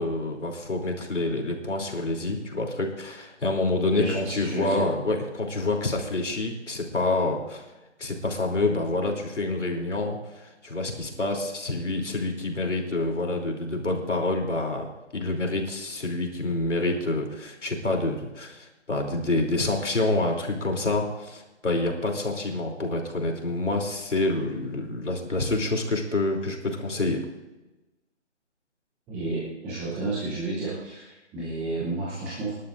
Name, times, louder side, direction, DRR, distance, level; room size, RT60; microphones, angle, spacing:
voice 1, 0.0-7.6 8.0-27.2, left 2 dB, 80° left, 2 dB, 3.2 m, -27 dB
voice 2, 3.9-4.8 29.1-32.5, right 2 dB, 5° right, -7 dB, 0.7 m, -31 dB
24.5 x 11.5 x 2.6 m, 1.1 s
figure-of-eight pair, 155°, 36 cm